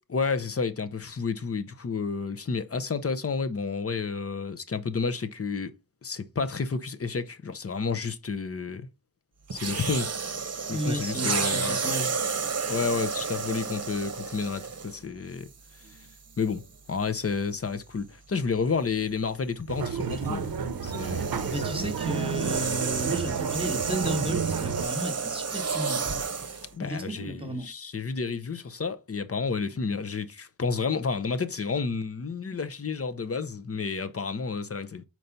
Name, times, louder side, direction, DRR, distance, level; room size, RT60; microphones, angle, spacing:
voice 1, 0.1-5.7 6.0-8.9 9.5-10.1 10.7-12.0 12.7-15.5 15.8-16.0 16.4-16.6 16.9-20.5 20.8-21.9 26.7-35.0, left 5 dB, 40° left, 0.7 m, -31 dB
sound 1, 9.5-15.0 15.8-16.1 20.0-26.7, right 5 dB, 45° right, 0.9 m, -31 dB
voice 2, 10.7-12.2 21.4-26.0 26.8-27.7, equal, 15° right, 1.4 m, -33 dB
sound 2, 19.7-24.8, right 6 dB, 85° right, 0.6 m, -31 dB
4.6 x 4.1 x 5.2 m
wide cardioid pair, 70°, 34 cm